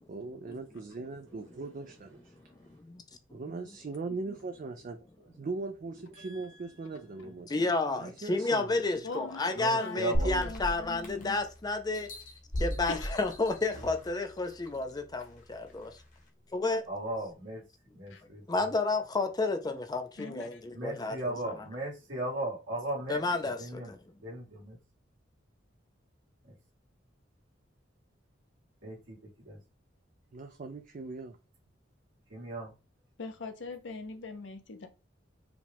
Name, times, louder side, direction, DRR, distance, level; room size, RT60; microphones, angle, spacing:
voice 1, 0.1-2.3 3.3-5.0 5.3-7.5 8.0-8.8 30.3-31.4, right 3 dB, 45° right, 0.4 m, -40 dB
voice 2, 2.7-3.0 3.3-3.4 7.5-12.1 12.6-15.9 16.5-16.8 18.5-21.5 23.1-24.0, left 3 dB, 20° left, 0.5 m, -31 dB
voice 3, 6.2-6.6 9.4-10.3 16.9-17.6 17.9-18.7 20.7-23.2 23.6-23.9 24.2-24.8 28.8-29.2 29.5-29.6 32.3-32.7, right 1 dB, 75° right, 1.9 m, -37 dB
voice 4, 9.0-11.4 12.9-13.1 18.1-18.2 20.2-20.6 33.2-34.9, left 3 dB, 65° left, 0.7 m, -42 dB
sound 1, 10.1-11.4 11.9-14.1 14.7-14.8, equal, 45° left, 1.0 m, -34 dB
4.9 x 2.3 x 3.4 m
head